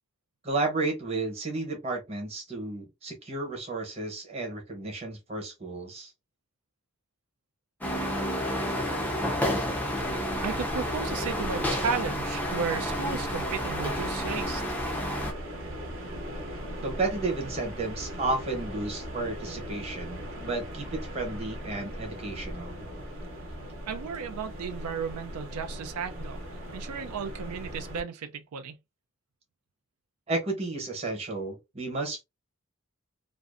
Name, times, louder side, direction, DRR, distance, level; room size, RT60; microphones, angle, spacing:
voice 1, 0.4-6.1 16.8-22.8 30.3-32.2, right 3 dB, 30° right, 0.9 m, -32 dB
sound 1, 7.8-15.3, equal, 5° left, 0.4 m, -30 dB
sound 2, 9.9-28.0, equal, 60° right, 0.7 m, -39 dB
voice 2, 10.4-14.8 23.9-26.4 26.7-28.8, right 6 dB, 90° right, 0.4 m, -34 dB
2.5 x 2.1 x 2.4 m
head